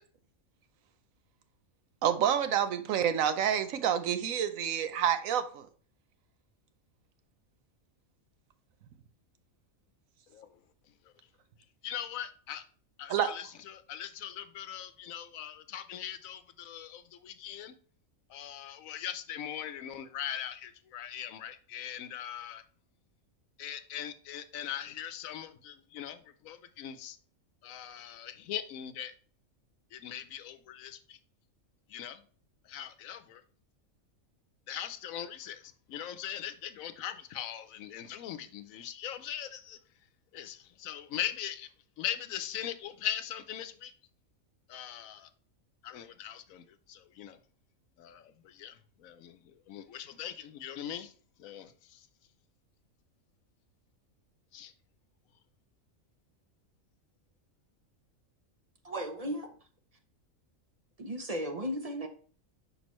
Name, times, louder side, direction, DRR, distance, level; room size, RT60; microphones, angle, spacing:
voice 1, 2.0-5.7 13.1-13.3, right 9 dB, 80° right, 1.1 m, -28 dB
voice 2, 11.8-12.6 13.0-17.7 18.3-22.6 23.6-27.2 27.6-29.1 29.9-31.2 31.9-32.2 32.7-33.4 34.7-39.8 40.3-41.7 42.0-43.9 44.7-45.3 45.8-47.4 48.0-51.1 51.4-52.0 54.5-54.7, left 10 dB, 80° left, 1.0 m, -40 dB
voice 3, 58.8-59.5 61.0-62.1, equal, 35° right, 0.7 m, -35 dB
6.2 x 5.2 x 3.0 m
omnidirectional pair, 1.4 m